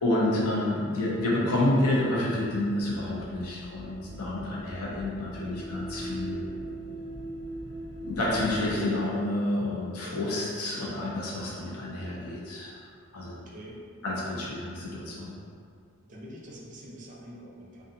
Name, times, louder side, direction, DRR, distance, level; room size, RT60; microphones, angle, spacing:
voice 1, 0.0-6.5 8.0-12.8 13.1-13.4 14.0-15.3, left 1 dB, 75° left, -5 dB, 0.6 m, -29 dB
sound 1, 2.8-8.8, right 1 dB, 25° left, 0.4 m, -40 dB
voice 2, 13.3-13.8 16.1-17.8, equal, 35° right, -5 dB, 0.4 m, -45 dB
2.6 x 2.3 x 2.6 m, 2.2 s
head